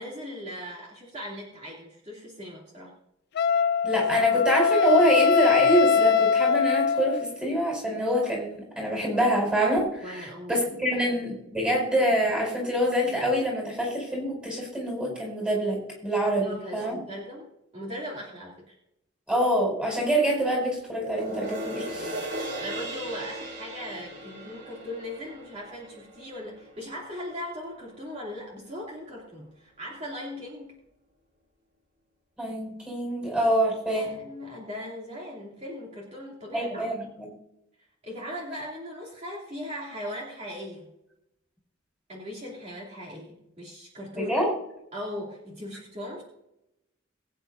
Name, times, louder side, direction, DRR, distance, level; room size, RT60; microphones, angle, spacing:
voice 1, 0.0-2.9 10.0-10.6 10.9-11.0 16.4-18.7 21.9-30.8 33.9-37.1 38.0-40.9 42.1-44.3 44.9-46.2, left 1 dB, 35° right, -4 dB, 2.8 m, -39 dB
Wind instrument woodwind instrument, 3.4-7.3, left 6 dB, 55° left, 0.4 m, -22 dB
voice 2, 3.8-17.0 19.3-22.2 32.4-34.1 36.5-37.3 44.2-44.5, right 1 dB, 5° right, -1 dB, 5.1 m, -26 dB
sound 1, 20.9-27.5 27.9-28.0, right 1 dB, 60° right, 3.4 m, -38 dB
22.0 x 9.4 x 2.7 m, 0.83 s
head